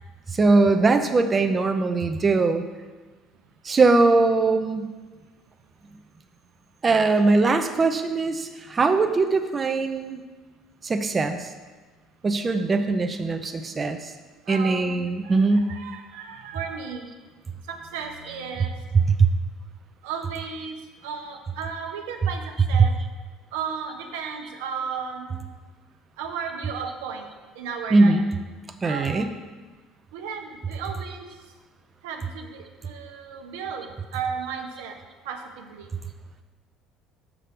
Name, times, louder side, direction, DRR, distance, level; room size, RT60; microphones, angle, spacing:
voice 1, 0.3-2.6 3.6-4.9 6.8-10.2 10.8-11.5 12.2-14.1 14.5-15.7 19.2-19.3 27.9-28.3 28.8-29.3, right 3 dB, 30° right, 6 dB, 0.6 m, -21 dB
voice 2, 14.4-15.0 15.2-17.1 17.6-18.7 20.0-23.0 23.5-25.4 26.2-27.3 27.5-28.2 28.8-29.3 30.1-31.5 32.0-35.0 35.2-35.9, right 6 dB, 85° right, 3 dB, 0.9 m, -35 dB
6.3 x 6.1 x 5.1 m, 1.3 s
supercardioid pair, 80°, 0 cm